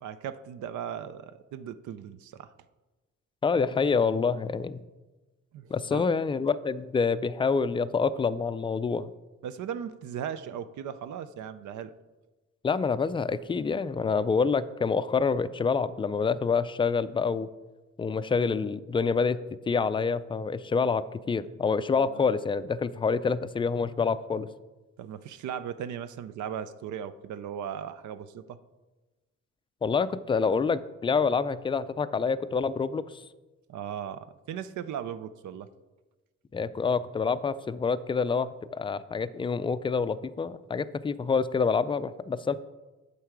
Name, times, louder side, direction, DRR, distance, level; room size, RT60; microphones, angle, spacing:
voice 1, 0.0-2.5 5.5-6.1 9.4-11.9 21.9-22.2 25.0-28.6 33.7-35.7, right 9 dB, 75° right, 13 dB, 0.6 m, -37 dB
voice 2, 3.4-4.8 5.7-9.1 12.6-17.5 18.0-19.4 19.7-24.5 29.8-33.0 36.5-42.6, left 5 dB, 15° left, 14 dB, 0.3 m, -27 dB
8.4 x 6.7 x 4.7 m, 1.2 s
cardioid pair, 90°, 30 cm